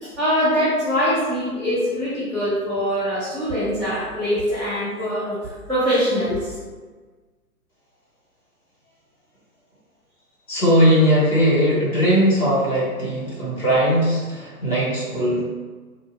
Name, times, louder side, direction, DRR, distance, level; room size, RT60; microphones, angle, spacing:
voice 1, 0.0-6.6, equal, ahead, -18 dB, 0.6 m, -23 dB
voice 2, 10.5-15.5, equal, 80° left, -6 dB, 1.4 m, -19 dB
2.6 x 2.1 x 2.4 m, 1.4 s
figure-of-eight pair, 125°, 45 cm